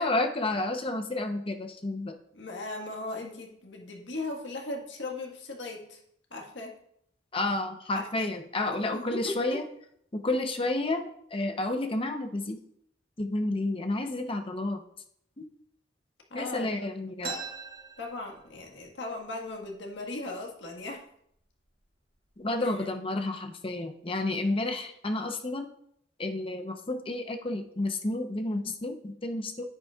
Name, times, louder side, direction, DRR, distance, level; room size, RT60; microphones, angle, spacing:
voice 1, 0.0-2.2 7.3-9.6 10.1-12.6 13.2-14.8 15.4-15.5 16.3-17.3 22.4-25.7 26.2-29.7, left 2 dB, 30° left, 6 dB, 0.8 m, -30 dB
voice 2, 2.3-6.0 6.3-6.8 7.9-8.3 8.6-9.6 16.3-16.9 18.0-21.0 22.6-22.7, left 2 dB, 75° left, 2 dB, 1.6 m, -38 dB
sound 1, 17.2-18.8 19.2-19.3 19.5-20.1 20.7-20.9 21.6-21.8 22.2-22.7, right 4 dB, 55° right, 2.1 m, -40 dB
10.0 x 8.1 x 2.4 m, 0.68 s
head